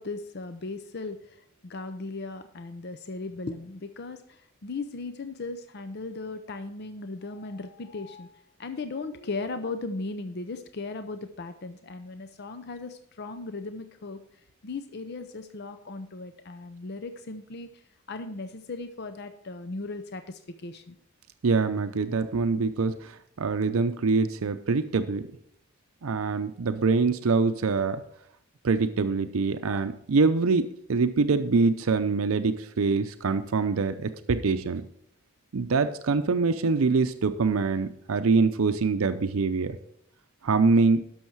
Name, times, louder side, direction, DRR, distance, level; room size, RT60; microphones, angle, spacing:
voice 1, 0.0-14.2 14.6-17.7 18.1-21.0, left 3 dB, 50° left, 9 dB, 0.6 m, -37 dB
voice 2, 21.4-23.1 23.4-25.2 26.0-28.0 28.6-34.9 35.5-39.8 40.4-41.1, right 4 dB, 75° right, 9 dB, 0.5 m, -24 dB
12.0 x 6.3 x 4.6 m, 0.69 s
head